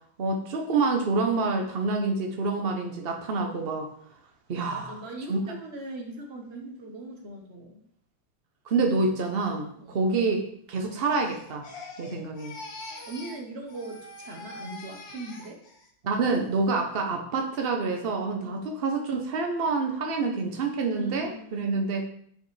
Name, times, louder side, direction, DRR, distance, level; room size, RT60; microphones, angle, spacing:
voice 1, 0.2-3.9 4.5-5.0 5.3-5.4 8.7-11.7 12.0-12.6 16.0-22.1, right 3 dB, 70° right, 2 dB, 0.5 m, -27 dB
voice 2, 4.7-7.8 9.8-10.0 12.9-15.6 18.4-18.6 20.9-21.8, right 2 dB, 40° right, 2 dB, 1.1 m, -40 dB
Crying sobbing, 10.9-13.4 13.7-15.9 16.3-16.7, left 2 dB, 70° left, 1.9 m, -44 dB
8.8 x 4.9 x 3.2 m, 0.64 s
omnidirectional pair, 2.1 m